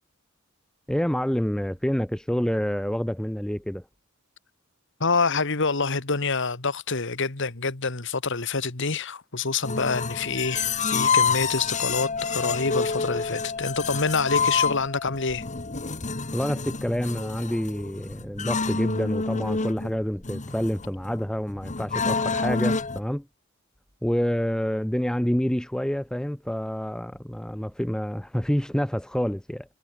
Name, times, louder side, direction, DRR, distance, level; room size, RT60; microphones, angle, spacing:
voice 1, 0.9-3.8 16.3-23.2 24.0-29.8, equal, 5° left, 0.5 m, -27 dB
voice 2, 5.0-15.4, left 4 dB, 65° left, 2.0 m, -27 dB
sound 1, 9.6-23.0, left 5 dB, 35° left, 1.6 m, -28 dB
head